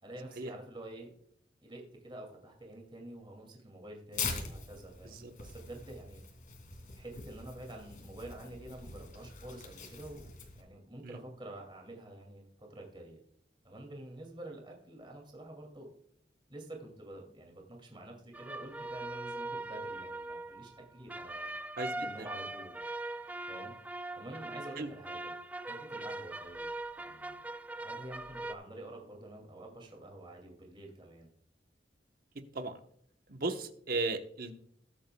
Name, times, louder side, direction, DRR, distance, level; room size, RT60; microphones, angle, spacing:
voice 1, 0.0-1.1 1.6-6.2 7.0-10.3 10.6-13.2 13.6-15.9 16.5-21.5 21.9-22.8 23.5-23.7 24.2-25.3 25.6-26.7 27.0-27.4 27.8-31.3, right 1 dB, 30° right, 1 dB, 2.4 m, -48 dB
Tearing, 4.1-10.6, left 4 dB, 50° left, 2.6 m, -43 dB
sound 1, 18.3-28.5, right 2 dB, 10° right, 0.4 m, -41 dB
voice 2, 32.3-32.7 33.3-34.6, right 3 dB, 55° right, 6 dB, 1.1 m, -36 dB
20.5 x 8.4 x 2.3 m, 0.68 s
head